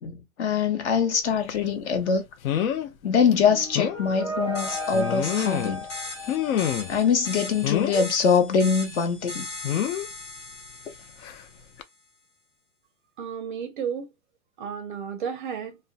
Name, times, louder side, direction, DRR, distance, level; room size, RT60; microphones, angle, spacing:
voice 1, 0.0-2.2 3.0-5.9 6.9-9.5, left 6 dB, 55° left, 0.9 m, -23 dB
sound 1, 1.5-1.6 2.4-2.9 3.3-3.4 3.7-4.0 4.9-5.8 6.3-7.0 7.6-8.1 9.6-10.1 11.2-11.4 11.8-11.9, left 9 dB, 75° left, 0.6 m, -27 dB
sound 2, 3.4-7.4, equal, ahead, 0.7 m, -36 dB
sound 3, 4.5-11.7, left 2 dB, 20° left, 1.0 m, -39 dB
voice 2, 13.2-14.1 14.6-15.8, right 7 dB, 40° right, 0.4 m, -32 dB
2.5 x 2.2 x 2.4 m
hypercardioid pair, 155°, 41 cm